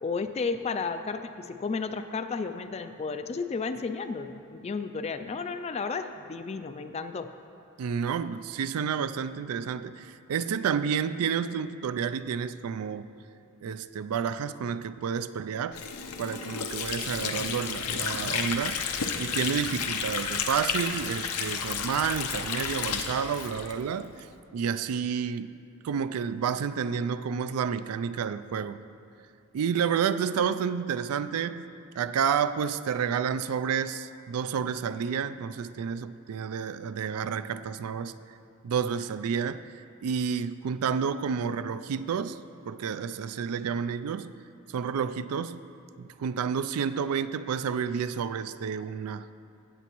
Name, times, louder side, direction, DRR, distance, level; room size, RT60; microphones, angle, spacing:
voice 1, 0.0-7.3, left 4 dB, 30° left, 0.3 m, -33 dB
voice 2, 7.8-13.1 13.6-15.8 16.2-24.3 24.5-25.6 25.8-28.8 29.5-31.7 32.0-38.1 38.6-39.7 40.0-42.4 42.7-44.3 44.7-45.6 46.0-49.3, right 7 dB, 80° right, 0.3 m, -30 dB
Water / Sink (filling or washing), 15.7-24.3, left 6 dB, 90° left, 0.7 m, -32 dB
16.0 x 8.2 x 3.0 m
head